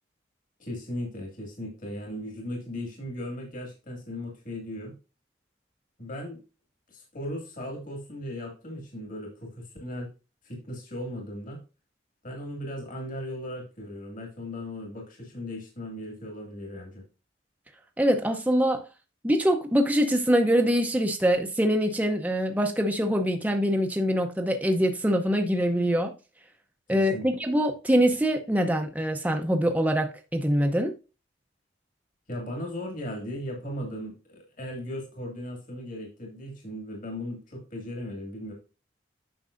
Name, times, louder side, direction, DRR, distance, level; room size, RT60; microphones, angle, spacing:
voice 1, 0.6-5.0 6.0-6.4 6.9-10.1 10.4-11.6 12.2-17.0 26.9-27.3 32.3-38.5, left 1 dB, 45° left, 2.2 m, -37 dB
voice 2, 18.0-18.8 19.2-26.1 26.9-30.9, equal, 10° right, 0.7 m, -24 dB
9.2 x 6.1 x 2.5 m
head